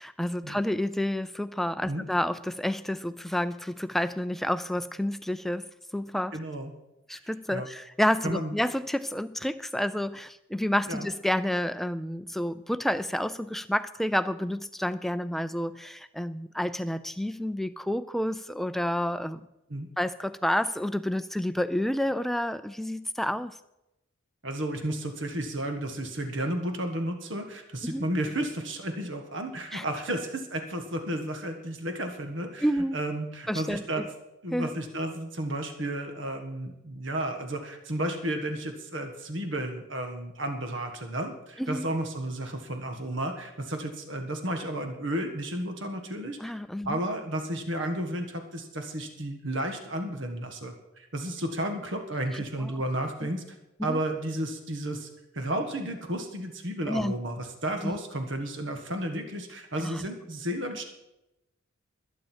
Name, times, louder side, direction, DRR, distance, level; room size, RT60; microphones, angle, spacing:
voice 1, 0.0-5.7 5.9-6.4 7.1-19.4 20.0-23.6 27.8-28.1 29.7-29.9 32.6-33.0 33.5-33.8 34.5-34.7 41.6-41.9 46.4-47.0 52.3-52.7 53.2-53.3 53.8-54.0 56.9-57.1 57.8-58.0 59.8-60.1, left 1 dB, ahead, 12 dB, 0.4 m, -29 dB
voice 2, 6.3-6.7 7.5-7.7 8.2-8.6 10.9-11.1 19.7-19.9 24.4-32.6 32.9-34.0 34.4-46.5 46.8-53.4 53.8-60.8, right 1 dB, 60° right, 5 dB, 1.6 m, -32 dB
21.0 x 9.1 x 4.5 m, 0.90 s
head